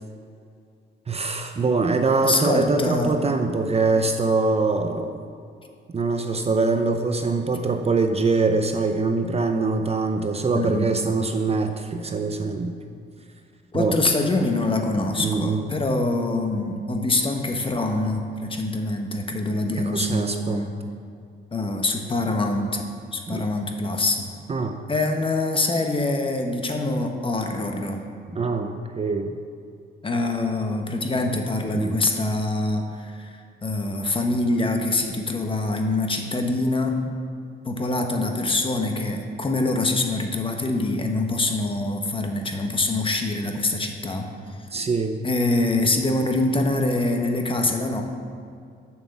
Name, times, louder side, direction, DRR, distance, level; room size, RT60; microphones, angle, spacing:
voice 1, 1.1-5.2 5.9-12.7 13.7-14.0 15.2-15.7 19.8-20.6 23.3-23.4 24.5-24.8 28.3-29.3 31.7-32.0 44.7-45.2, right 3 dB, 30° right, 6 dB, 0.6 m, -23 dB
voice 2, 2.2-3.2 10.5-10.9 13.7-20.7 21.5-22.8 23.1-24.3 24.9-28.0 30.0-37.0 37.6-44.7 45.2-48.0, left 2 dB, 25° left, 4 dB, 1.2 m, -24 dB
7.4 x 6.1 x 7.1 m, 2.3 s
cardioid pair, 90°, 20 cm